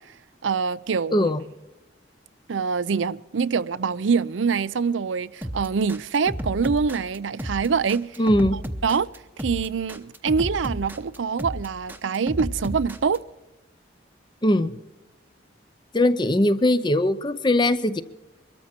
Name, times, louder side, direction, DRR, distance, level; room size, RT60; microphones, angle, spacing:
voice 1, 0.4-1.3 2.5-8.2 8.8-9.1 9.4-13.2, right 5 dB, 85° right, 0.5 m, -25 dB
voice 2, 1.1-1.4 8.2-8.6 14.4-14.7 15.9-18.0, left 1 dB, 25° left, 0.6 m, -20 dB
sound 1, 5.4-13.2, equal, 10° right, 0.9 m, -33 dB
23.0 x 13.0 x 4.4 m
head